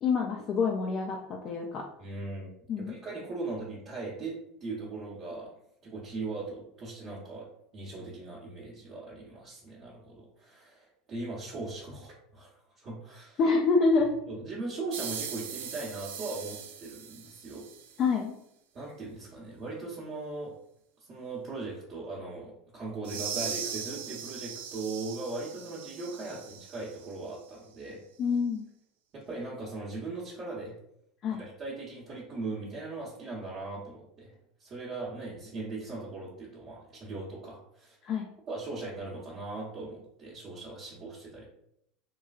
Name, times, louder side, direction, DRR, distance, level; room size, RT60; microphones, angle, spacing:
voice 1, 0.0-1.9 2.7-2.9 13.4-14.1 18.0-18.3 28.2-28.6 31.2-31.4 38.0-38.3, left 4 dB, 45° left, 0 dB, 0.4 m, -26 dB
voice 2, 2.0-2.5 2.8-5.5 5.8-7.5 7.7-12.5 12.8-13.4 14.3-17.6 18.7-20.5 21.1-28.0 29.1-30.8 31.3-34.3 34.6-38.0 38.5-41.4, right 3 dB, 40° right, -7 dB, 0.9 m, -39 dB
sound 1, 14.9-18.0 23.0-27.1, right 7 dB, 75° right, 0.4 m, -39 dB
3.1 x 2.2 x 2.3 m, 0.75 s
hypercardioid pair, 85°, 0 cm